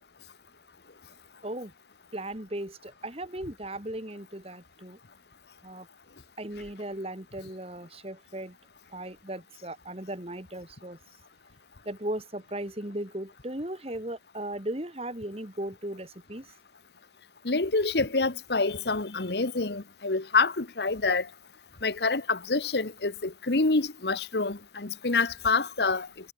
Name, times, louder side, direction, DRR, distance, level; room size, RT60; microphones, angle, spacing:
voice 1, 2.1-5.0 5.6-5.9 6.4-8.6 8.9-11.0 11.8-16.5, right 1 dB, 35° right, 2.8 m, -37 dB
voice 2, 17.4-21.3 21.8-26.1, left 3 dB, 70° left, 1.3 m, -27 dB
head